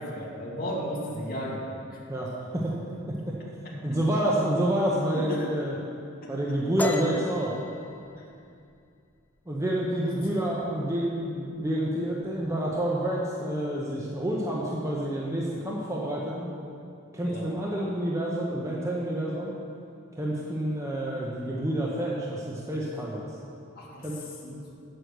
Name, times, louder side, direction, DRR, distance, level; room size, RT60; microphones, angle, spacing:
voice 1, 0.0-1.6 1.9-2.0 5.1-5.5 6.2-6.3 8.2-8.3 10.2-10.3 17.2-17.5 23.8-24.1 24.4-24.6, equal, 45° left, -5 dB, 1.9 m, -35 dB
voice 2, 2.1-2.7 3.1-3.4 3.8-5.7 6.3-7.5 9.5-16.5 17.1-19.5 20.2-23.2 24.0-24.2, right 1 dB, 15° right, -4 dB, 0.9 m, -28 dB
sound 1, 6.8-10.2 10.5-10.9 11.2-11.8 12.0-12.8, left 2 dB, 10° left, 0.4 m, -37 dB
8.5 x 7.9 x 6.5 m, 2.5 s
head